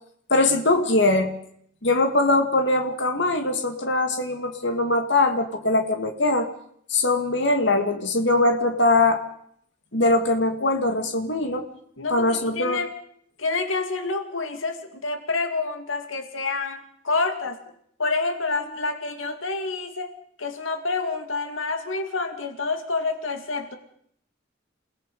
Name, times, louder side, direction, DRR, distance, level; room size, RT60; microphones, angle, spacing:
voice 1, 0.3-1.3 1.8-6.5 6.9-9.2 9.9-11.7 12.1-12.8, left 2 dB, 65° left, 5 dB, 2.3 m, -21 dB
voice 2, 12.0-12.9 13.4-16.8 17.0-17.6 18.0-20.1 20.4-23.8, left 3 dB, 85° left, 7 dB, 2.2 m, -28 dB
28.5 x 18.5 x 5.5 m, 0.69 s
head